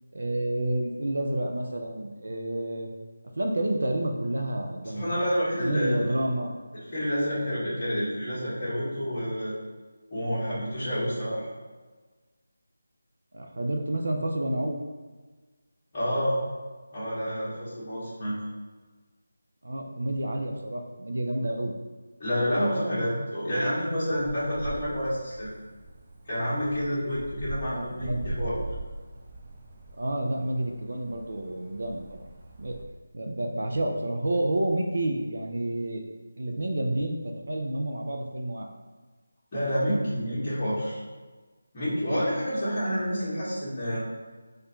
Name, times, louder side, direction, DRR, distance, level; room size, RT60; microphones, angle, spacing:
voice 1, 0.1-2.9 3.4-5.2 5.6-6.6 13.3-14.8 19.6-21.7 27.7-28.3 30.0-32.3 32.6-32.8 33.1-36.0 36.4-38.7, right 1 dB, 70° right, 3 dB, 0.6 m, -29 dB
voice 2, 4.9-6.1 6.7-9.5 10.1-11.4 15.9-16.4 16.9-18.3 22.2-25.5 26.3-28.5 39.5-41.0 41.7-44.0, equal, 20° left, -10 dB, 1.5 m, -28 dB
sound 1, 23.9-32.8, right 2 dB, 20° right, 0.3 m, -41 dB
4.4 x 2.6 x 4.3 m, 1.3 s
figure-of-eight pair, 175°, 0 cm